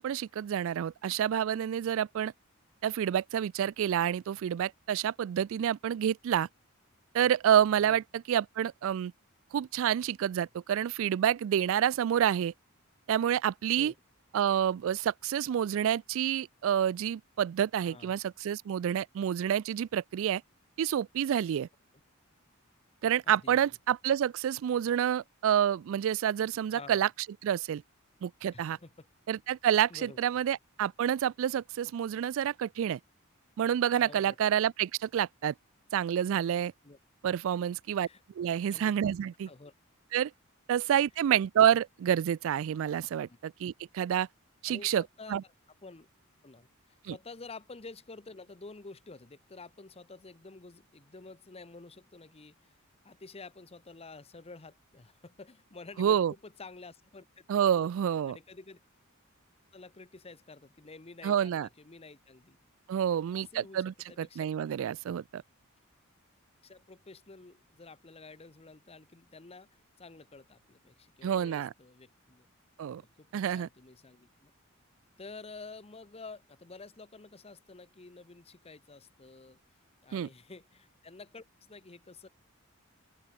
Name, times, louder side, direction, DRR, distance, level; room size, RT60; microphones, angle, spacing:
voice 1, 0.0-2.3 2.8-6.5 7.1-9.1 9.5-12.5 13.1-13.9 14.3-20.4 20.8-21.7 23.0-27.1 27.4-27.8 28.2-28.8 29.3-33.0 33.6-35.5 35.9-36.7 37.2-38.1 38.4-39.5 40.1-40.3 40.7-44.3 44.6-45.0 45.3-45.4 47.0-47.1 56.0-56.3 57.5-58.4 61.2-61.7 62.9-65.4 71.2-71.7 72.8-73.0 73.3-73.7 80.1-80.3, right 9 dB, 65° right, 0.3 m, -28 dB
voice 2, 17.8-18.2 23.2-23.6 26.7-27.0 28.5-29.1 29.9-30.2 34.0-34.4 36.8-37.0 38.0-38.2 38.7-38.9 39.5-39.7 40.7-40.8 43.3-43.4 44.7-45.4 45.8-46.1 46.4-52.7 53.0-57.2 57.8-57.9 58.3-58.8 59.7-62.6 63.3-64.5 66.6-72.5 73.0-74.5 75.2-79.6 80.0-82.3, left 3 dB, 30° left, 1.0 m, -50 dB
open air
head